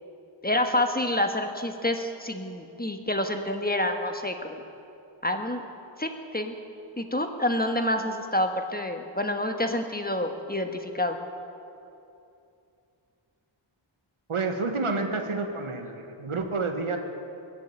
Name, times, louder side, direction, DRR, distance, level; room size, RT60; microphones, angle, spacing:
voice 1, 0.4-4.6 5.2-5.6 6.0-6.6 7.0-11.2, left 1 dB, 20° left, 5 dB, 1.4 m, -28 dB
voice 2, 14.3-17.0, right 3 dB, 85° right, 5 dB, 1.5 m, -29 dB
21.5 x 7.7 x 8.8 m, 2.7 s
wide cardioid pair, 55°, 49 cm